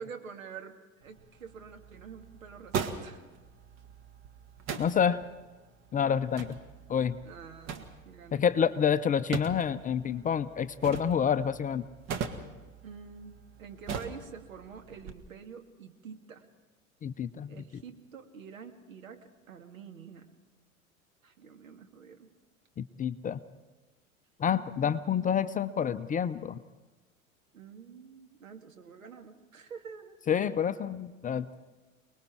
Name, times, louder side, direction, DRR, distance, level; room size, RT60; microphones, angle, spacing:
voice 1, 0.0-3.2 7.2-8.4 12.8-16.4 17.5-20.3 21.2-22.3 27.5-30.2, right 6 dB, 75° right, 5 dB, 2.2 m, -47 dB
sound 1, 1.0-15.1, right 6 dB, 40° right, 1.9 m, -41 dB
voice 2, 4.8-5.2 5.9-6.6 6.9-7.2 8.3-11.8 17.0-17.6 22.8-23.4 24.4-26.6 30.3-31.6, left 8 dB, 20° left, 12 dB, 0.6 m, -28 dB
29.0 x 20.0 x 4.4 m, 1.2 s
figure-of-eight pair, 85°, 41 cm